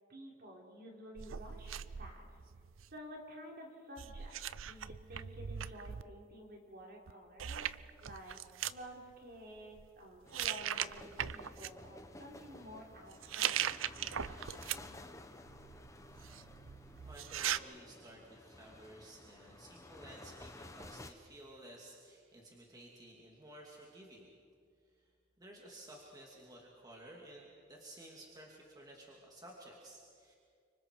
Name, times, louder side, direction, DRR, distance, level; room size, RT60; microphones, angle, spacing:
voice 1, 0.1-2.4 2.9-7.7 8.0-8.4 8.7-13.5, equal, 50° right, -1 dB, 4.4 m, -51 dB
sound 1, 1.2-3.0 4.0-6.0 7.1-7.2 7.4-8.8 9.6-9.9 10.3-11.7 13.1-15.1 15.4-17.6, right 10 dB, 85° right, 0.6 m, -40 dB
sound 2, 10.2-21.1, left 1 dB, 15° left, 1.1 m, -53 dB
voice 2, 16.8-24.3 25.0-25.1 25.4-30.3, right 1 dB, 20° right, -2 dB, 2.7 m, -54 dB
29.5 x 26.0 x 4.8 m, 2.2 s
head